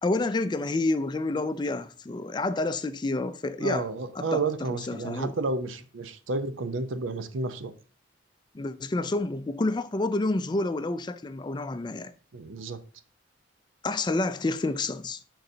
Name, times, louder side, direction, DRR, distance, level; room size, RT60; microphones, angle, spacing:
voice 1, 0.0-3.9 4.2-4.4 4.7-5.3 8.5-12.1 13.8-15.2, left 2 dB, 20° left, 0.4 m, -29 dB
voice 2, 3.6-7.7 12.3-12.8, right 3 dB, 85° right, 0.7 m, -31 dB
10.5 x 3.9 x 2.7 m
head